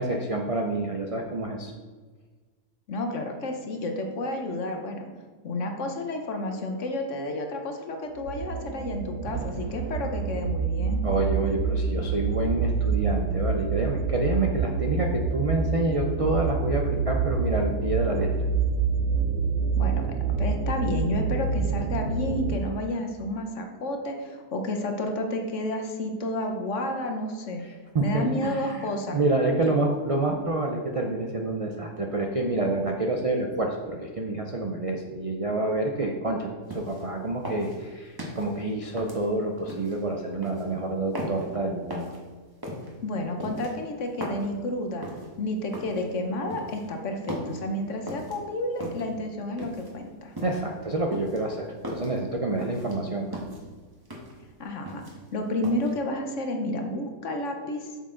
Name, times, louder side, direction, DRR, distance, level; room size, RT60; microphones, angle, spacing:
voice 1, 0.0-1.7 11.0-18.3 27.6-42.1 50.4-53.4, right 2 dB, 60° right, 1 dB, 0.3 m, -28 dB
voice 2, 2.9-5.1 5.4-11.0 19.8-27.6 28.0-29.2 43.0-45.1 45.4-50.3 54.6-55.0 55.3-57.9, left 1 dB, 55° left, 4 dB, 1.1 m, -31 dB
sound 1, 8.2-22.6, right 5 dB, 80° right, 1.1 m, -27 dB
sound 2, 36.7-37.1 37.4-38.5 39.0-40.0 40.4-40.7 41.1-41.5 41.9-42.2 42.6-42.9 43.4-44.5 45.0-45.3 45.7-46.0 46.5-46.9 47.3-47.6 48.1-48.4 48.8-49.1 49.6-49.9 50.4-50.7 51.1-52.2 52.6-53.0 53.3-53.6 54.0-54.4 54.7-55.3 55.6-55.9, equal, 15° right, 1.3 m, -37 dB
8.1 x 6.5 x 3.8 m, 1.4 s
omnidirectional pair, 1.6 m